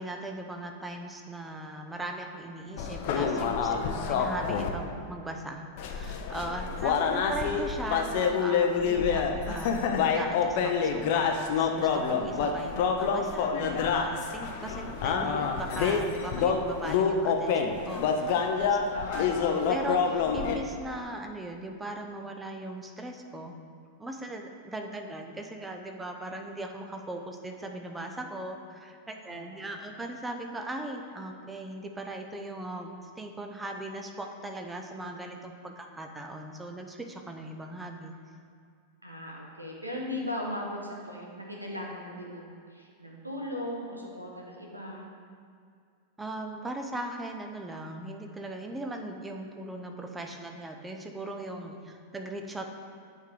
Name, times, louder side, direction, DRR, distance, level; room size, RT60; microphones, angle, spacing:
voice 1, 0.0-23.6 24.0-38.1 46.2-52.7, right 1 dB, 10° right, 3 dB, 0.6 m, -39 dB
sound 1, 2.8-4.7 5.8-20.6, left 6 dB, 50° left, 0.6 m, -27 dB
voice 2, 18.8-19.2 29.3-29.7 39.0-45.1, left 1 dB, 85° right, -1 dB, 1.0 m, -38 dB
8.3 x 3.6 x 4.8 m, 2.3 s
figure-of-eight pair, 90°, 0 cm